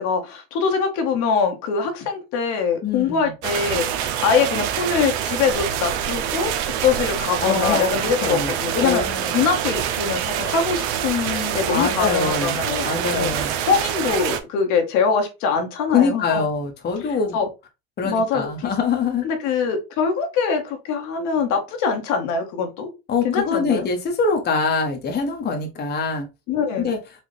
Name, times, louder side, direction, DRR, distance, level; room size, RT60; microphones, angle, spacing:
voice 1, 0.0-12.9 13.1-16.4 17.3-17.5 18.0-18.7 19.2-22.9 23.2-23.9 26.5-26.9, left 5 dB, 65° left, 4 dB, 1.2 m, -23 dB
voice 2, 2.8-3.3 7.4-7.9 8.2-8.5 8.8-9.4 11.7-12.6 12.8-13.5 15.9-17.4 18.0-19.3 23.1-26.3 26.8-27.0, left 5 dB, 35° left, 3 dB, 0.9 m, -23 dB
sound 1, 3.4-14.4, right 9 dB, 75° right, 0.7 m, -26 dB
4.1 x 2.4 x 3.3 m, 0.27 s
supercardioid pair, 90°, 31 cm